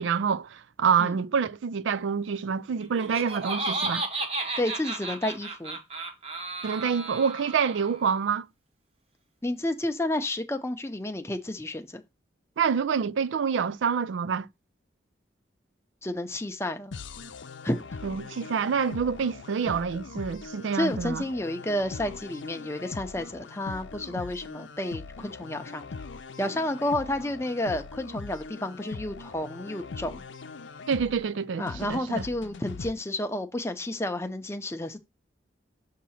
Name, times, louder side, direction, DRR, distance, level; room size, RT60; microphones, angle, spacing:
voice 1, 0.0-4.0 6.6-8.4 12.6-14.5 18.0-21.2 30.9-32.2, right 6 dB, 90° right, 0.4 m, -27 dB
Laughter, 2.8-8.0, right 3 dB, 30° right, 0.9 m, -33 dB
voice 2, 4.6-5.8 9.4-12.0 16.0-17.0 17.6-17.8 20.7-25.9 26.4-30.2 31.6-35.0, left 1 dB, 15° left, 0.6 m, -31 dB
sound 1, 16.9-32.9, left 4 dB, 85° left, 0.6 m, -41 dB
7.3 x 2.8 x 5.6 m
head